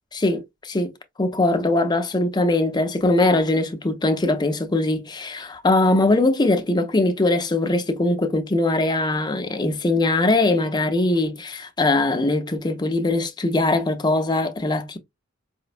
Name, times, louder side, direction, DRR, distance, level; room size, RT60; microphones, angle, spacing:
voice 1, 0.1-0.9 1.2-15.0, left 2 dB, 20° left, 0.5 m, -21 dB
4.9 x 2.1 x 2.4 m
head